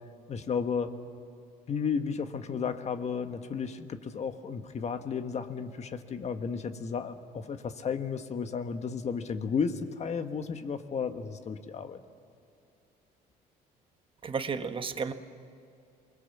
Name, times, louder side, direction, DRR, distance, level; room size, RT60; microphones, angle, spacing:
voice 1, 0.3-0.9 1.7-12.0, left 6 dB, 40° left, 8 dB, 1.4 m, -33 dB
voice 2, 14.2-15.1, right 5 dB, 30° right, 8 dB, 1.3 m, -32 dB
28.0 x 21.5 x 7.3 m, 2.5 s
cardioid pair, 110°, 17 cm